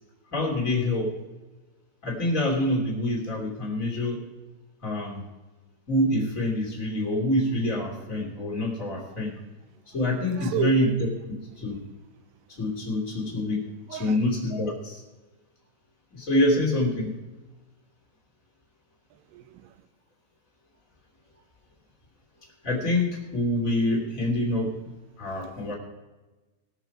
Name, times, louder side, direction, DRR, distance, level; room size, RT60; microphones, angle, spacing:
voice 1, 0.3-1.2 2.0-4.2 4.8-5.2 5.9-9.3 9.9-11.1 11.6-11.8 12.5-15.0 16.1-17.2 22.6-25.7, left 1 dB, 25° left, -2 dB, 1.9 m, -26 dB
voice 2, 10.3-10.8 13.9-14.2 19.1-19.8 25.7-25.8, right 12 dB, 90° right, 12 dB, 3.3 m, -33 dB
20.5 x 6.8 x 4.5 m, 1.2 s
omnidirectional pair, 5.7 m